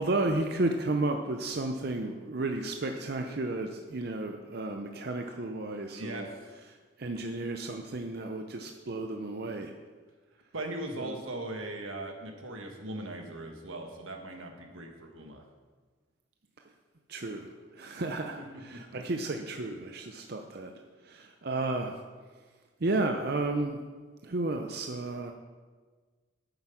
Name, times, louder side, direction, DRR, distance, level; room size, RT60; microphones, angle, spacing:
voice 1, 0.0-6.3 7.0-9.7 11.0-11.1 17.1-17.5 17.7-20.7 21.1-22.0 22.8-23.8 24.2-25.3, right 2 dB, 50° right, 4 dB, 0.6 m, -32 dB
voice 2, 5.9-6.3 10.5-15.4 18.4-18.8, right 1 dB, 90° right, 3 dB, 1.6 m, -39 dB
8.9 x 7.9 x 5.8 m, 1.4 s
head